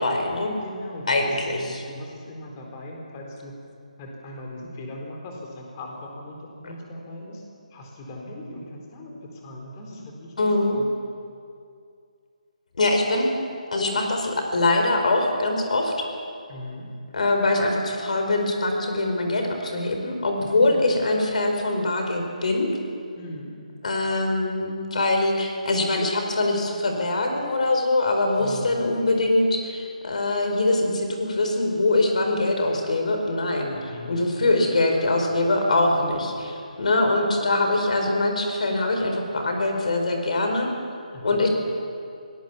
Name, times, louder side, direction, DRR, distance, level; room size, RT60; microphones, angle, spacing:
voice 1, 0.0-0.5 1.1-1.8 6.6-6.7 10.4-10.8 12.8-13.3 13.7-16.0 17.1-22.7 23.8-40.7 41.2-41.5, left 2 dB, 60° left, 3 dB, 4.8 m, -23 dB
voice 2, 0.6-3.5 4.0-7.4 7.7-10.5 10.7-10.9 16.5-16.9 20.4-20.5 23.2-23.5 28.4-28.9 33.7-34.7 35.7-36.1 41.1-41.4, left 1 dB, 25° left, 1 dB, 4.2 m, -39 dB
23.5 x 18.5 x 7.3 m, 2.4 s
figure-of-eight pair, 155°, 4 cm